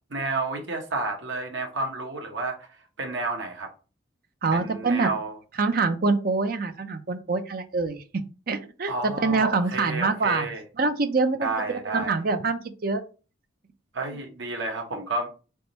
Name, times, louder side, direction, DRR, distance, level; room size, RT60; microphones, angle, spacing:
voice 1, 0.1-2.7 3.0-3.7 4.5-5.4 8.9-10.6 11.4-12.2 13.9-15.3, right 3 dB, 70° right, 3 dB, 1.1 m, -30 dB
voice 2, 4.4-5.1 5.6-8.0 8.5-10.5 10.8-13.0, right 3 dB, 50° right, 8 dB, 0.6 m, -25 dB
3.6 x 3.4 x 4.0 m, 0.34 s
head